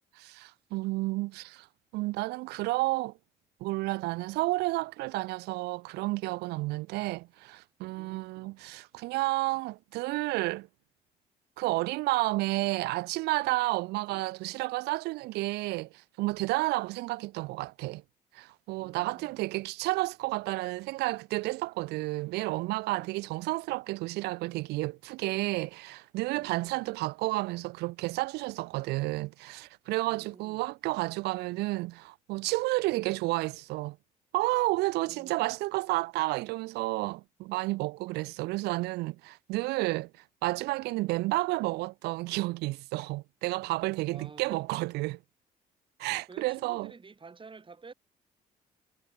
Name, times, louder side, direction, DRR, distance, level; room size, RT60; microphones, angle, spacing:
voice 1, 0.1-1.7 1.9-3.1 3.6-10.7 11.6-18.0 18.3-34.0 34.3-40.1 40.4-45.2 46.0-46.9, right 21 dB, 85° right, 1.5 m, -31 dB
voice 2, 7.9-8.5 18.8-19.4 22.9-23.4 26.4-26.9 30.0-30.7 35.0-35.5 44.1-44.7 46.3-47.9, right 4 dB, 30° right, 7.6 m, -51 dB
supercardioid pair, 75°, 17 cm